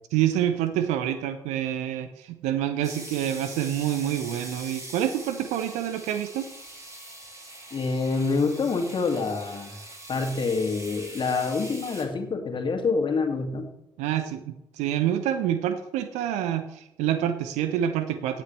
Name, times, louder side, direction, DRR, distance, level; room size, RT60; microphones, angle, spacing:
voice 1, 0.1-6.5 14.0-18.4, right 11 dB, 65° right, 10 dB, 0.7 m, -27 dB
sound 1, 2.8-12.0, right 1 dB, 25° right, 4.9 m, -43 dB
voice 2, 7.7-9.7 10.1-13.7, left 4 dB, 40° left, 3 dB, 2.3 m, -26 dB
17.5 x 9.4 x 3.3 m, 0.86 s
figure-of-eight pair, 45°, 13 cm